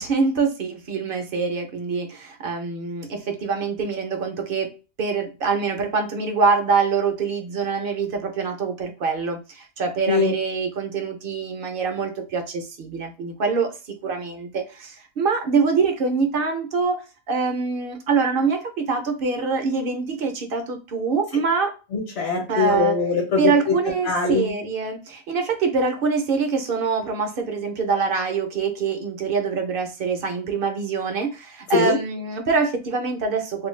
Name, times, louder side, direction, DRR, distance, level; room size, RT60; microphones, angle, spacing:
voice 1, 0.0-4.7 5.0-13.7 14.0-17.0 17.3-21.7 22.5-22.9 23.4-33.7, right 5 dB, 60° right, 5 dB, 0.7 m, -24 dB
voice 2, 21.9-23.7 24.0-24.5 31.7-32.0, left 4 dB, 65° left, -1 dB, 1.0 m, -22 dB
2.4 x 2.2 x 3.1 m, 0.32 s
omnidirectional pair, 1.2 m